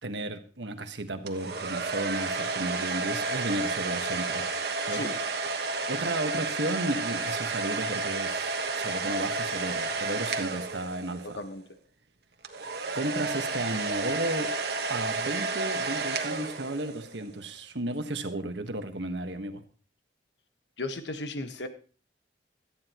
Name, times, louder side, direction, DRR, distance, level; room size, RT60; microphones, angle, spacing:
voice 1, 0.0-4.5 4.9-5.1 5.9-11.4 12.9-14.5 14.9-19.6, right 1 dB, 80° right, 7 dB, 1.4 m, -33 dB
sound 1, 1.3-11.4 12.4-17.2, right 3 dB, 60° right, 1.5 m, -31 dB
voice 2, 20.8-21.7, left 2 dB, 75° left, 9 dB, 1.4 m, -35 dB
17.5 x 13.5 x 3.0 m, 0.38 s
head